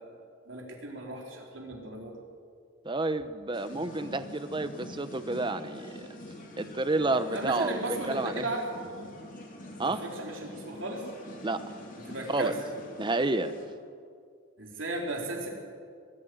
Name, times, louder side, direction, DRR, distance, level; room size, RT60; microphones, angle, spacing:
voice 1, 0.0-2.2 7.3-8.8 9.8-11.1 12.1-12.6 14.6-15.5, right 2 dB, 65° right, 0 dB, 4.2 m, -36 dB
voice 2, 2.8-6.1 6.6-8.5 9.8-10.0 11.4-11.6 12.3-12.5 13.0-13.5, right 2 dB, 25° right, 11 dB, 0.9 m, -30 dB
sound 1, 3.5-13.7, left 1 dB, 40° left, 3.6 m, -45 dB
22.0 x 14.0 x 9.4 m, 2.2 s
head